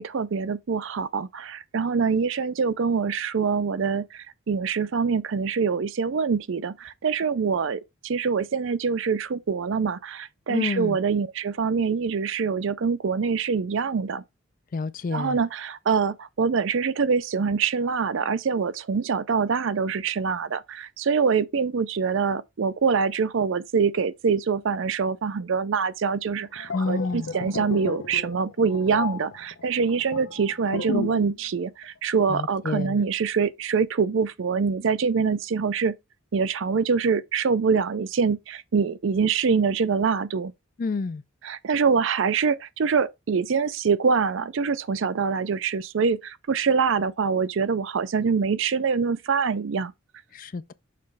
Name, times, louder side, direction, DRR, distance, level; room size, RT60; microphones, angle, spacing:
voice 1, 0.0-14.2 15.1-35.9 36.3-40.5 41.4-49.9, right 5 dB, 60° right, 0.4 m, -25 dB
voice 2, 10.5-11.0 14.7-15.4 26.7-27.3 32.3-33.0 40.8-41.2 50.3-50.7, left 3 dB, 40° left, 0.3 m, -29 dB
sound 1, 26.4-31.3 31.6-31.8, left 4 dB, 85° left, 0.7 m, -33 dB
6.7 x 3.1 x 5.3 m
head